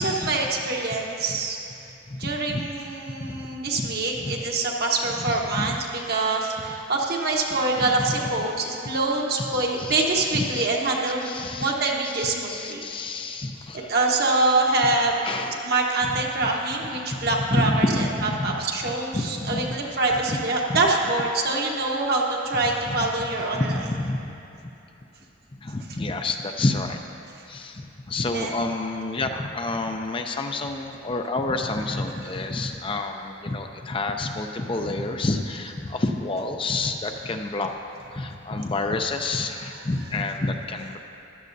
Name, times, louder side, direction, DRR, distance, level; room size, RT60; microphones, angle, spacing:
voice 1, 0.0-1.6 2.2-12.9 13.7-15.2 15.6-23.8 28.1-28.5, right 2 dB, 55° right, -1 dB, 1.2 m, -25 dB
voice 2, 2.1-2.7 3.3-3.4 3.8-3.9 4.2-4.4 5.4-5.8 7.8-7.9 9.5-10.7 11.3-13.9 15.2-15.6 17.5-18.6 18.8-19.8 20.3-20.4 20.7-20.8 22.9-23.0 23.5-24.3 25.6-27.0 27.5-27.8 28.1-37.7 38.1-41.0, left 2 dB, 25° left, 4 dB, 0.5 m, -29 dB
15.0 x 12.0 x 2.7 m, 2.8 s
head